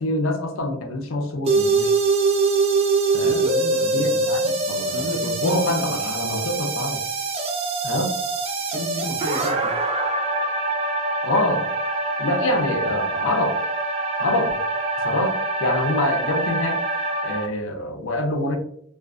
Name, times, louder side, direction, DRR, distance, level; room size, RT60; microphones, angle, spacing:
voice 1, 0.0-1.9 3.1-3.5 3.9-7.0 7.8-8.1 11.2-11.7 12.2-13.6 14.2-14.5 15.0-16.8 17.2-18.6, left 1 dB, 65° left, 5 dB, 0.5 m, -25 dB
sound 1, 1.5-17.5, right 3 dB, 30° right, 0.3 m, -24 dB
voice 2, 3.2-4.3 4.9-6.1 8.7-9.7, left 1 dB, 80° right, -2 dB, 1.0 m, -32 dB
2.4 x 2.3 x 2.3 m, 0.67 s
head